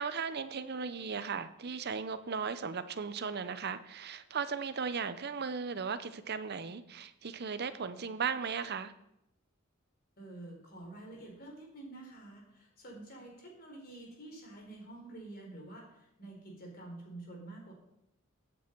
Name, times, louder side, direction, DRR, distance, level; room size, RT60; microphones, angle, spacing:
voice 1, 0.0-8.9, right 5 dB, 50° right, 12 dB, 0.7 m, -36 dB
voice 2, 10.2-17.7, right 2 dB, 45° left, 0 dB, 3.9 m, -48 dB
16.0 x 8.6 x 4.6 m, 0.83 s
head